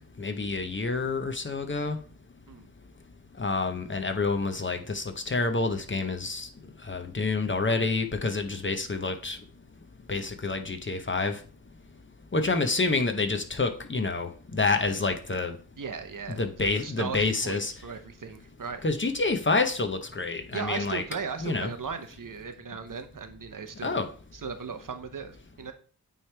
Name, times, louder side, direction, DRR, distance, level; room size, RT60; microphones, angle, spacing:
voice 1, 0.2-2.0 3.4-6.5 6.9-9.4 10.1-11.3 12.3-15.5 16.4-17.7 18.8-21.0 21.4-21.7 23.8-24.1, left 3 dB, 30° left, 6 dB, 0.7 m, -28 dB
voice 2, 15.8-18.8 20.5-24.0 24.4-25.7, right 5 dB, 60° right, 8 dB, 0.7 m, -37 dB
8.9 x 3.2 x 3.3 m, 0.40 s
wide cardioid pair, 100°, 37 cm